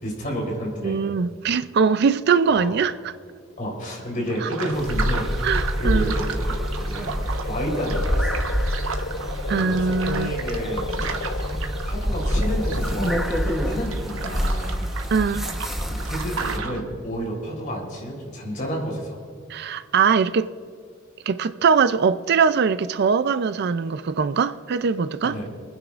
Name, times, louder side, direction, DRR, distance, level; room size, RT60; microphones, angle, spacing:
voice 1, 0.0-1.0 2.5-2.7 3.6-5.3 5.8-6.6 6.8-8.4 9.5-11.2 11.8-14.8 15.9-19.2 25.2-25.5, equal, 45° left, 3.7 m, -30 dB
voice 2, 0.8-3.1 4.4-4.5 5.4-6.1 9.5-10.4 15.1-15.5 19.5-20.5 21.3-25.4, right 5 dB, 55° right, 0.4 m, -21 dB
sound 1, 4.3-16.8, right 5 dB, 85° right, 1.1 m, -35 dB
sound 2, 4.7-16.6, equal, ahead, 1.0 m, -27 dB
sound 3, 5.6-13.7, left 4 dB, 70° left, 0.5 m, -35 dB
28.5 x 9.9 x 2.4 m
head